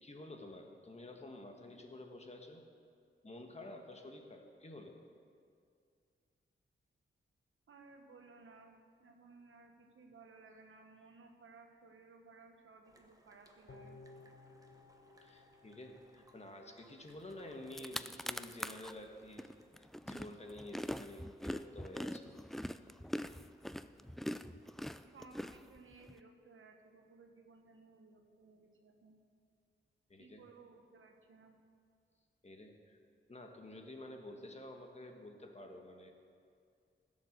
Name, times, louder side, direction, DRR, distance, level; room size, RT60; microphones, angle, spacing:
voice 1, 0.0-2.6 3.2-5.0 15.2-22.3 30.1-30.4 32.4-33.0 33.3-36.1, left 1 dB, 30° left, 3 dB, 1.4 m, -50 dB
voice 2, 7.7-14.0 24.4-24.8 25.0-29.2 30.2-31.6, right 4 dB, 80° right, 4 dB, 1.3 m, -59 dB
sound 1, 12.8-19.7, right 1 dB, 15° right, 1.1 m, -68 dB
sound 2, 13.7-17.0 17.4-17.5, left 3 dB, 65° left, 1.5 m, -58 dB
sound 3, 17.3-17.4 17.6-18.9 19.4-26.1, equal, ahead, 0.3 m, -42 dB
16.0 x 7.5 x 6.6 m, 2.3 s
wide cardioid pair, 120°, 21 cm